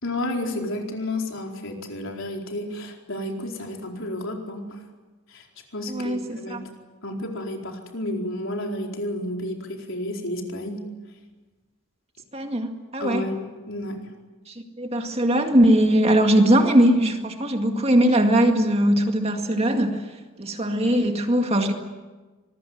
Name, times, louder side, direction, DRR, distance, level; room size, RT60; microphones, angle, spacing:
voice 1, 0.0-4.8 5.3-5.4 5.7-6.7 7.0-10.9 13.0-14.1, left 1 dB, 60° left, 1 dB, 4.5 m, -31 dB
voice 2, 5.9-6.6 12.3-13.2 14.5-20.0 20.4-21.7, right 1 dB, 25° right, 4 dB, 2.1 m, -20 dB
25.5 x 20.5 x 9.4 m, 1.2 s
head